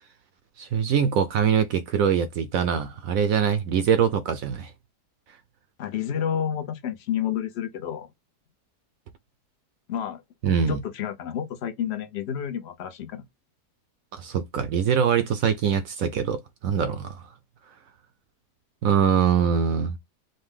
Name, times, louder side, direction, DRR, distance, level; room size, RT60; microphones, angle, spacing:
voice 1, 0.6-4.7 10.4-10.8 14.1-17.2 18.8-20.0, right 7 dB, 70° right, 0.8 m, -23 dB
voice 2, 5.8-8.1 9.9-10.2 10.7-13.2, left 9 dB, 60° left, 0.7 m, -30 dB
5.3 x 2.2 x 3.6 m
omnidirectional pair, 1.8 m